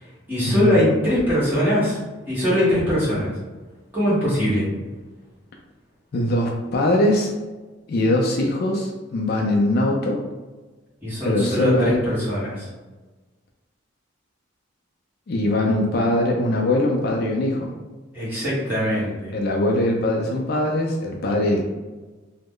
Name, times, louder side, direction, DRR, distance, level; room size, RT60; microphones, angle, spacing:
voice 1, 0.3-2.0 2.3-3.3 3.9-4.7 11.0-12.7 18.1-19.3, left 1 dB, 10° right, -10 dB, 1.4 m, -21 dB
voice 2, 6.1-7.3 7.9-10.2 11.2-12.0 15.3-17.7 19.3-21.6, left 1 dB, 50° left, 0 dB, 0.4 m, -21 dB
3.0 x 2.1 x 3.6 m, 1.2 s
head